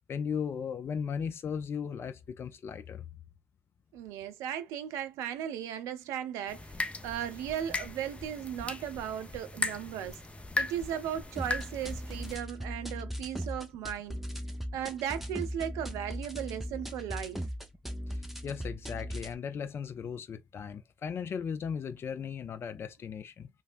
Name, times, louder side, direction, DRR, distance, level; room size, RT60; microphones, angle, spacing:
voice 1, 0.1-3.1 18.1-23.5, left 7 dB, 50° left, 0.4 m, -37 dB
voice 2, 3.9-10.2 10.6-14.2 14.7-17.4, right 10 dB, 75° right, 0.4 m, -36 dB
sound 1, 6.5-12.4, left 2 dB, 25° left, 0.7 m, -37 dB
sound 2, 11.4-19.4, equal, 5° right, 0.9 m, -39 dB
3.2 x 2.3 x 2.5 m
hypercardioid pair, 45°, 5 cm